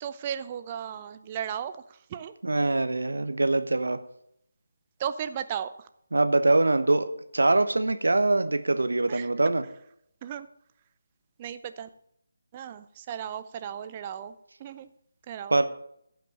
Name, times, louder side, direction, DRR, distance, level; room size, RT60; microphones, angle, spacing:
voice 1, 0.0-2.4 5.0-5.9 9.1-9.3 10.2-10.5 11.4-11.9 12.5-14.3 14.6-14.9 15.3-15.6, right 9 dB, 25° right, 11 dB, 0.6 m, -35 dB
voice 2, 2.4-4.0 6.1-9.6 15.5-15.6, right 2 dB, 65° right, 9 dB, 1.0 m, -23 dB
15.5 x 5.9 x 5.4 m, 0.73 s
figure-of-eight pair, 155°, 0 cm